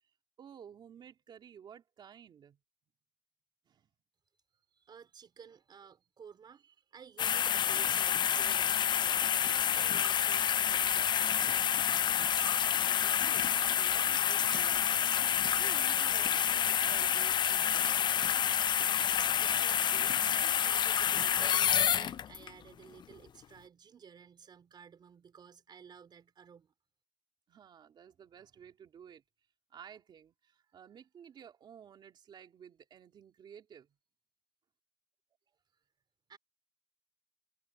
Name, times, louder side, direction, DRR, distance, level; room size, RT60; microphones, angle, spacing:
voice 1, 0.4-2.6 3.7-3.9 12.3-15.0 15.4-18.0 27.5-29.2 29.7-34.0, right 8 dB, 90° right, 3.5 m, -54 dB
voice 2, 4.7-11.7 19.3-26.7 36.3-36.4, right 7 dB, 75° right, 4.0 m, -54 dB
sound 1, 7.2-22.5 23.0-23.1, left 9 dB, 75° left, 0.4 m, -28 dB
cardioid pair, 85°, 8 cm